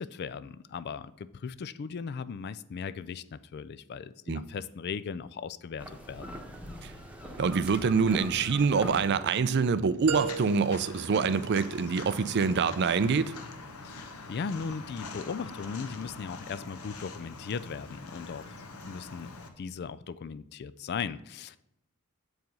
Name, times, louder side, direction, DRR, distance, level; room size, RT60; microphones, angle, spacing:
voice 1, 0.0-6.4 13.8-21.6, left 6 dB, 45° left, 0.3 m, -38 dB
sound 1, 5.8-10.0, equal, 5° right, 1.0 m, -42 dB
voice 2, 7.4-13.3, right 5 dB, 50° right, 0.4 m, -26 dB
Walk footsteps, 10.1-19.5, left 3 dB, 80° left, 1.0 m, -44 dB
sound 2, 10.1-12.1, right 7 dB, 75° right, 0.8 m, -37 dB
7.5 x 4.8 x 5.3 m
head